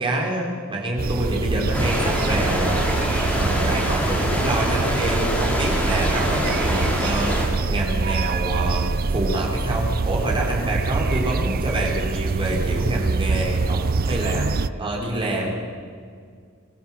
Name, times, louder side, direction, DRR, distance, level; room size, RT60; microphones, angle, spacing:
voice 1, 0.0-2.9 3.3-8.9 9.1-13.8 14.1-14.5 14.8-15.5, right 1 dB, 25° right, -2 dB, 4.5 m, -26 dB
sound 1, 1.0-14.7, right 4 dB, 45° right, 0.5 m, -25 dB
sound 2, 1.7-7.5, equal, 5° left, 3.9 m, -25 dB
sound 3, 1.8-9.6, left 1 dB, 80° left, 7.5 m, -38 dB
24.5 x 14.0 x 7.9 m, 2.1 s
head